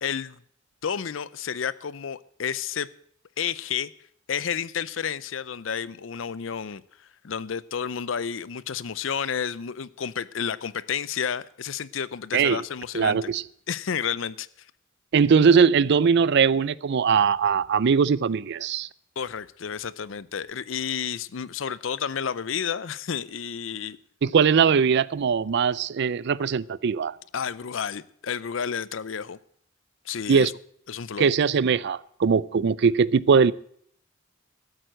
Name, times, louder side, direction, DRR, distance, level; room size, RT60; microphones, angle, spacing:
voice 1, 0.0-0.4 0.8-2.9 3.4-3.9 4.3-6.8 7.2-13.3 13.7-14.5 19.2-24.0 27.3-29.4 30.1-30.5 30.9-31.3, left 7 dB, 70° left, 0.6 m, -31 dB
voice 2, 12.3-12.6 12.9-13.4 15.1-18.9 24.2-27.1 30.3-30.5 31.2-33.5, right 6 dB, 60° right, 0.4 m, -20 dB
13.0 x 8.9 x 7.7 m
head